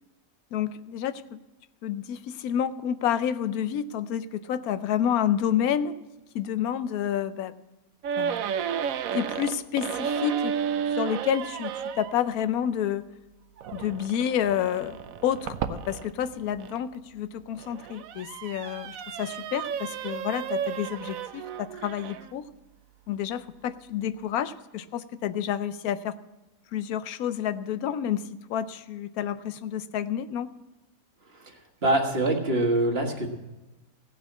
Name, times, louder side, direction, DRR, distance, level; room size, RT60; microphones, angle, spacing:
voice 1, 0.5-1.4 1.8-5.9 6.3-7.5 8.2-8.4 9.1-10.5 10.9-13.1 13.7-22.5 23.1-26.2 26.7-30.5, left 9 dB, 85° left, 14 dB, 1.1 m, -29 dB
sound 1, 8.0-12.2 13.6-16.8 17.4-22.4, right 7 dB, 75° right, 1.1 m, -32 dB
voice 2, 31.3-33.3, right 1 dB, 45° right, 2 dB, 1.7 m, -25 dB
16.5 x 5.9 x 8.3 m, 1.1 s
omnidirectional pair, 1.5 m